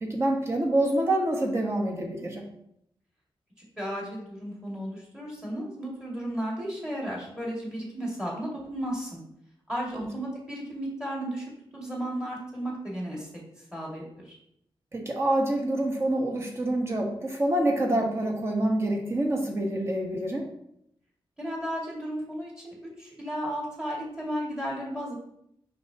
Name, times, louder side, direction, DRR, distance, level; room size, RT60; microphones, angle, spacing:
voice 1, 0.0-2.4 9.9-10.1 14.9-20.4, right 1 dB, 30° right, 1 dB, 1.2 m, -26 dB
voice 2, 3.8-9.2 9.7-11.4 11.7-13.3 13.7-14.4 21.4-25.1, equal, 10° right, -4 dB, 2.2 m, -34 dB
6.5 x 5.6 x 2.9 m, 0.73 s
wide cardioid pair, 140°, 9 cm